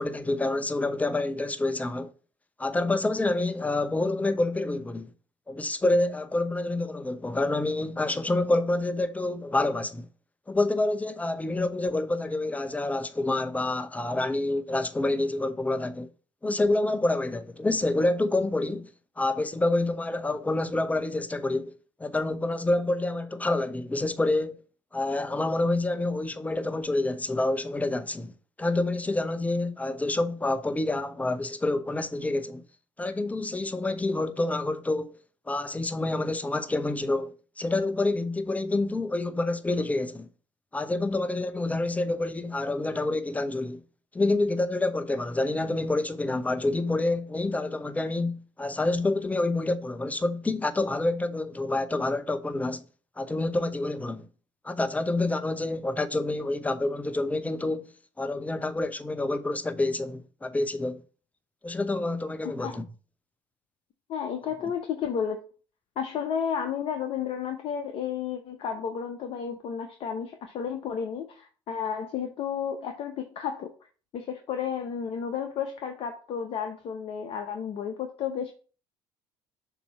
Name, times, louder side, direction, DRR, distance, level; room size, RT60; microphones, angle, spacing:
voice 1, 0.0-2.1 2.6-5.1 5.5-10.1 10.5-16.1 16.4-18.9 19.2-21.7 22.0-24.6 24.9-28.3 28.6-32.6 33.0-35.2 35.5-40.3 40.7-43.8 44.1-52.8 53.2-54.3 54.6-57.8 58.2-61.0 61.6-62.9, left 2 dB, 10° left, 0.7 m, -27 dB
voice 2, 62.4-62.8 64.1-65.4 66.0-73.7 74.1-78.5, left 7 dB, 55° left, 0.8 m, -32 dB
7.0 x 2.9 x 5.7 m
hypercardioid pair, 65°, 12 cm